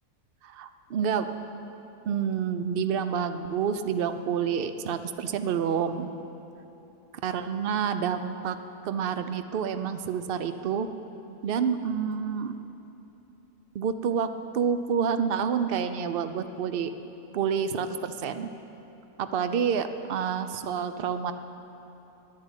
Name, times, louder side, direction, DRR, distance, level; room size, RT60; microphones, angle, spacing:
voice 1, 0.4-1.3 2.0-6.1 7.2-8.6 8.8-10.9 11.4-12.5 13.7-16.9 17.3-18.5 19.2-21.3, right 7 dB, 75° right, 10 dB, 0.5 m, -28 dB
11.0 x 9.9 x 9.8 m, 2.9 s
omnidirectional pair, 1.7 m